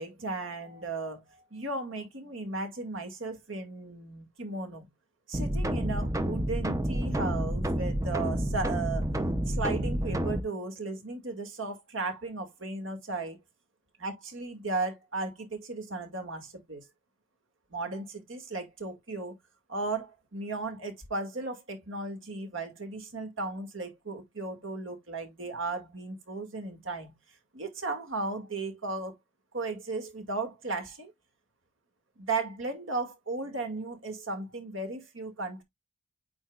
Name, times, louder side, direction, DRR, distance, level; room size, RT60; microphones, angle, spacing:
voice 1, 0.0-4.9 5.3-9.1 9.5-13.4 14.0-16.8 17.7-19.3 19.7-27.1 27.5-29.2 29.5-31.1 32.2-35.6, right 3 dB, 60° right, 2.1 m, -35 dB
sound 1, 5.3-10.4, right 1 dB, 15° right, 0.6 m, -29 dB
8.8 x 4.7 x 2.4 m
head